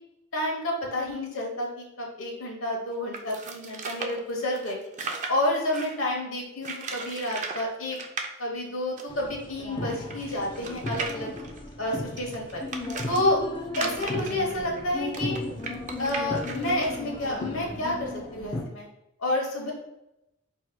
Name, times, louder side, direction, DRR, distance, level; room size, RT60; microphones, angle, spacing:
voice 1, 0.3-4.8 5.3-8.0 8.4-11.3 11.8-12.6 13.1-13.4 13.8-15.3 16.0-18.9 19.2-19.7, left 1 dB, 70° left, -2 dB, 1.2 m, -29 dB
sound 1, 3.1-6.0 6.6-7.7 7.9-8.3 9.0-9.1 9.3-9.4 9.9-13.2 13.7-17.0, right 4 dB, 35° right, 0.4 m, -36 dB
sound 2, 9.1-18.6, left 2 dB, 25° left, 0.5 m, -35 dB
4.6 x 4.2 x 2.2 m, 0.87 s
head